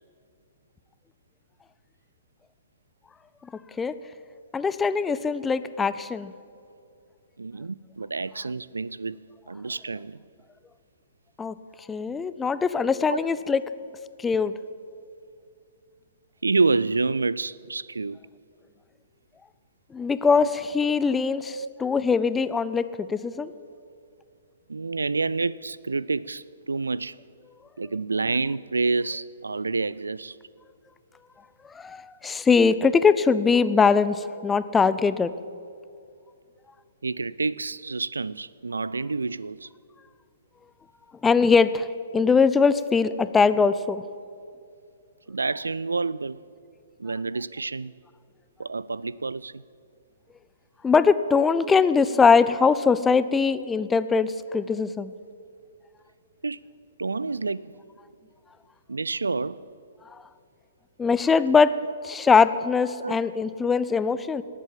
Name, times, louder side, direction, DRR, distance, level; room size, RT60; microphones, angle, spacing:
voice 1, 4.5-6.3 11.4-11.5 11.9-13.6 14.2-14.5 19.9-23.5 31.7-35.3 41.2-41.9 42.1-44.0 50.8-55.1 61.0-61.7 62.0-64.4, left 5 dB, 10° left, 14 dB, 0.5 m, -21 dB
voice 2, 7.4-10.2 12.8-13.2 16.4-18.2 20.4-20.5 21.5-21.7 24.7-27.2 27.8-30.4 37.0-39.7 45.3-46.4 47.0-47.9 48.6-49.6 56.4-56.6 57.0-57.7 58.9-59.6 61.4-61.5 63.0-63.2, right 3 dB, 75° right, 21 dB, 0.3 m, -28 dB
18.5 x 8.3 x 7.5 m, 2.4 s
figure-of-eight pair, 120°, 0 cm